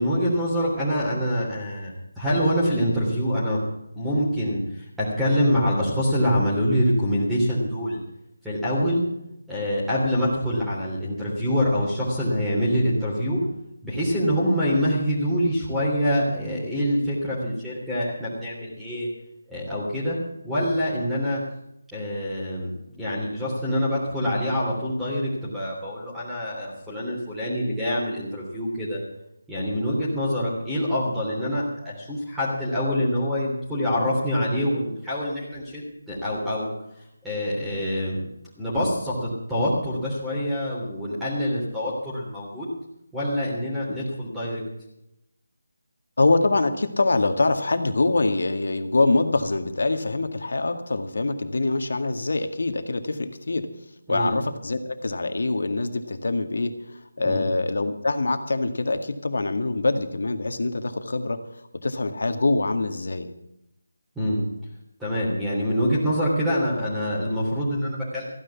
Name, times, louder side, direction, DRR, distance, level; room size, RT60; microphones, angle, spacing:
voice 1, 0.0-3.6 3.9-8.0 8.4-9.0 9.5-13.4 13.8-19.1 19.5-20.2 20.4-21.4 21.9-29.0 29.5-36.7 37.2-38.2 38.6-42.7 43.1-44.6 54.1-54.3 57.2-57.4 64.1-64.5 65.0-68.2, equal, 5° right, -9 dB, 3.3 m, -25 dB
voice 2, 46.2-53.7 54.1-61.4 61.8-63.3, left 2 dB, 65° left, 8 dB, 1.9 m, -24 dB
15.0 x 10.0 x 7.1 m, 0.83 s
figure-of-eight pair, 165°, 0 cm